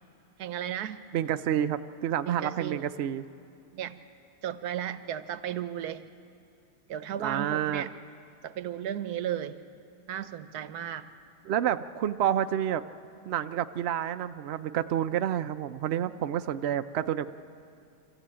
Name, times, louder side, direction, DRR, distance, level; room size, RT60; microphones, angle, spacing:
voice 1, 0.4-1.0 2.3-2.9 3.7-4.0 4.4-6.1 6.9-7.9 8.4-9.6 10.1-11.1, right 10 dB, 80° right, 12 dB, 1.3 m, -34 dB
voice 2, 1.1-3.3 7.2-7.8 11.4-12.8 13.2-17.3, right 10 dB, 60° right, 9 dB, 0.7 m, -29 dB
26.0 x 14.0 x 8.8 m, 2.6 s
omnidirectional pair, 1.7 m